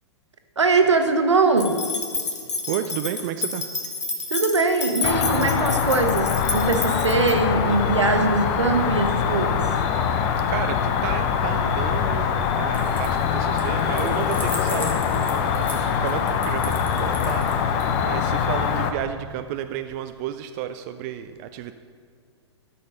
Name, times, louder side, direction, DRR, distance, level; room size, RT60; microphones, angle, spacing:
voice 1, 0.6-1.8 4.3-9.7, right 3 dB, 75° right, 5 dB, 1.3 m, -21 dB
sound 1, 1.6-7.3, left 4 dB, 80° left, 1.4 m, -30 dB
voice 2, 2.7-3.6 10.5-21.7, right 11 dB, 35° right, 8 dB, 0.4 m, -32 dB
Cricket, 5.0-18.9, left 7 dB, 35° left, 0.8 m, -23 dB
sound 2, 12.7-13.2 13.6-17.8, left 1 dB, 10° left, 1.9 m, -37 dB
13.0 x 6.7 x 5.5 m, 2.2 s
figure-of-eight pair, 110°, 15 cm